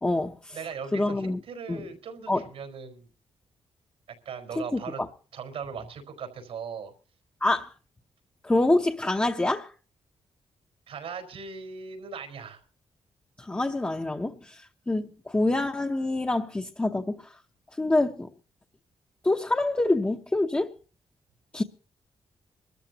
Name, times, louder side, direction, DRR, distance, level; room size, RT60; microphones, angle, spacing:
voice 1, 0.0-0.6 0.9-1.4 1.7-1.9 2.3-2.4 4.6-4.8 7.4-7.7 8.4-9.7 13.4-17.3 17.8-18.3 19.2-20.7 21.5-21.6, left 2 dB, 15° left, 0.9 m, -26 dB
voice 2, 0.5-3.1 4.2-5.0 5.3-6.9 10.9-12.6, right 6 dB, 85° right, 4.7 m, -39 dB
24.5 x 13.5 x 2.9 m
cardioid pair, 100°, 10 cm